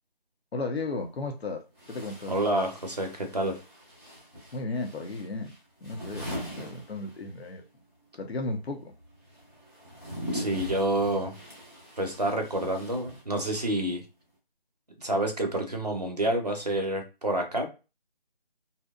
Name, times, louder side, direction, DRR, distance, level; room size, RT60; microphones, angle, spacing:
voice 1, 0.5-1.6 1.9-2.4 4.5-5.5 5.8-7.6 8.2-8.9, left 3 dB, 80° left, 0.8 m, -34 dB
sound 1, 0.8-0.9 1.7-7.6 7.8-13.7, equal, 25° left, 0.8 m, -42 dB
voice 2, 2.3-3.6 10.3-11.3 12.0-14.0 15.0-17.7, right 1 dB, 40° right, 0.6 m, -28 dB
2.7 x 2.0 x 2.3 m
figure-of-eight pair, 170°, 31 cm